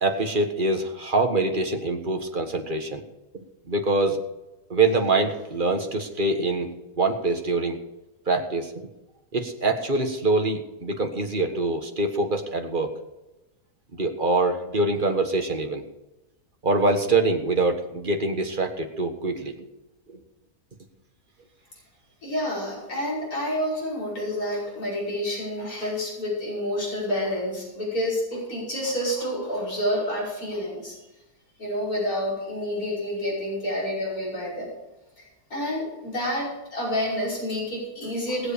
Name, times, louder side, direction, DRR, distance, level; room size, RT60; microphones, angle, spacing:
voice 1, 0.0-3.0 3.7-4.2 4.7-6.7 7.0-7.8 8.3-8.7 9.3-12.9 14.0-15.8 16.6-19.5 20.1-20.2, right 2 dB, 35° right, 4 dB, 1.6 m, -24 dB
voice 2, 22.2-30.9 31.6-34.7 35.2-35.3 35.5-38.5, equal, 65° left, -6 dB, 6.3 m, -28 dB
20.0 x 7.9 x 5.1 m, 0.99 s
omnidirectional pair, 1.7 m